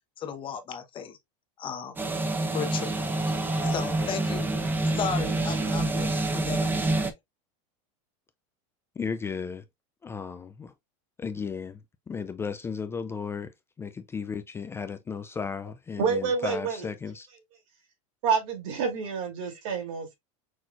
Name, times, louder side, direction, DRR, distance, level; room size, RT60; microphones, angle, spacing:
voice 1, 0.2-1.2 1.6-1.9 2.5-3.0 3.6-4.5 4.9-7.1, left 7 dB, 30° left, 0.9 m, -35 dB
sound 1, 2.0-7.1, right 2 dB, 10° right, 0.7 m, -27 dB
voice 2, 9.0-9.6 10.0-10.7 11.2-11.8 12.1-13.5 13.8-17.3, left 5 dB, 15° left, 0.3 m, -34 dB
voice 3, 16.0-16.8 18.2-20.1, right 6 dB, 70° right, 2.7 m, -28 dB
6.2 x 3.0 x 2.3 m
supercardioid pair, 135°, 17 cm